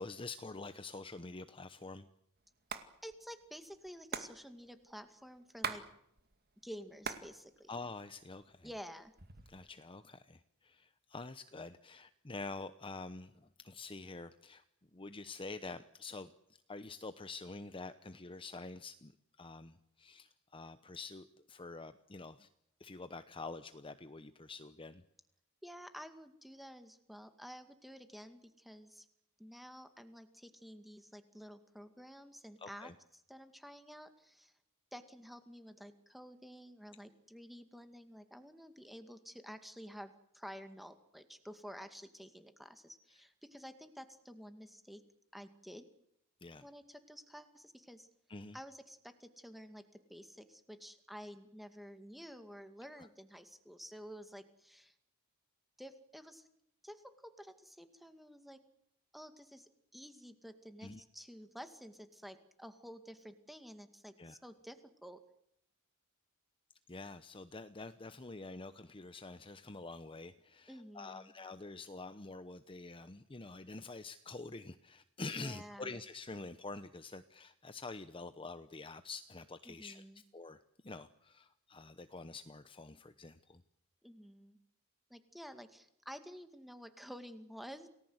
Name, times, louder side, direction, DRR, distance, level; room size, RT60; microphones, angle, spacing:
voice 1, 0.0-2.1 7.7-8.7 9.5-14.6 14.9-16.3 16.7-22.5 22.8-25.0 32.6-32.9 46.4-46.7 48.3-48.6 53.0-53.1 60.8-61.0 64.2-64.4 66.9-80.0 80.3-83.6, left 3 dB, 25° left, 11 dB, 0.9 m, -47 dB
Hands, 2.5-2.9 3.1-3.2 3.4-5.9 6.2-7.3 7.7-8.4 9.0-9.6, right 6 dB, 45° right, 2.2 m, -41 dB
voice 2, 3.0-5.8 6.6-7.7 8.6-9.1 25.6-29.1 29.4-32.9 33.3-34.5 34.9-45.0 45.3-45.9 46.6-48.1 48.5-54.9 55.8-56.5 56.8-58.6 59.1-65.2 70.7-71.3 75.4-75.9 79.7-80.2 84.0-84.6 85.1-87.9, equal, ahead, 9 dB, 2.1 m, -51 dB
29.0 x 19.0 x 8.0 m, 0.78 s
head